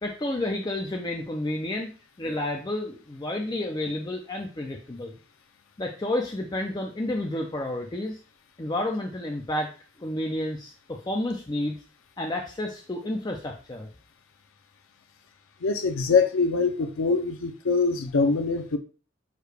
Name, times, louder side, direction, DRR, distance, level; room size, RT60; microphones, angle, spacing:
voice 1, 0.0-1.9 2.2-5.2 5.8-8.2 8.6-9.7 10.0-11.8 12.2-13.9, left 1 dB, 20° left, 0.4 m, -30 dB
voice 2, 15.6-18.8, left 4 dB, 80° left, 0.5 m, -23 dB
6.4 x 2.3 x 3.3 m
head